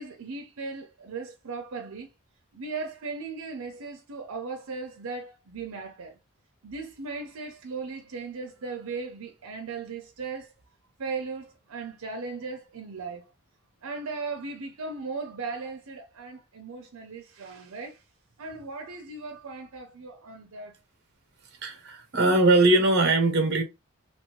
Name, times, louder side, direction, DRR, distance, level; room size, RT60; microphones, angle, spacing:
voice 1, 0.0-2.1 2.5-6.2 6.6-10.5 11.0-13.3 13.8-18.0 18.4-20.7, right 4 dB, 80° right, 0.6 m, -37 dB
voice 2, 21.6-23.6, right 2 dB, 50° right, 0.8 m, -21 dB
2.9 x 2.6 x 3.0 m
head